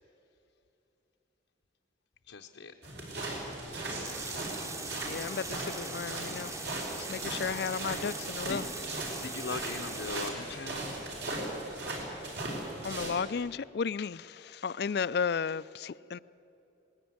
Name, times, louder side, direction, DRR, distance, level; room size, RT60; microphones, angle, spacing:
voice 1, 2.3-2.7 7.7-8.1 8.5-8.6 9.2-11.0, left 4 dB, 80° left, 3 dB, 0.8 m, -41 dB
sound 1, 2.8-13.1, right 2 dB, 65° right, 4.9 m, -38 dB
sound 2, 3.7-10.3, right 2 dB, 15° right, 0.9 m, -41 dB
voice 2, 5.1-6.5 7.0-8.6 12.8-16.2, left 6 dB, 55° left, 18 dB, 0.4 m, -34 dB
19.5 x 16.0 x 9.4 m, 2.9 s
head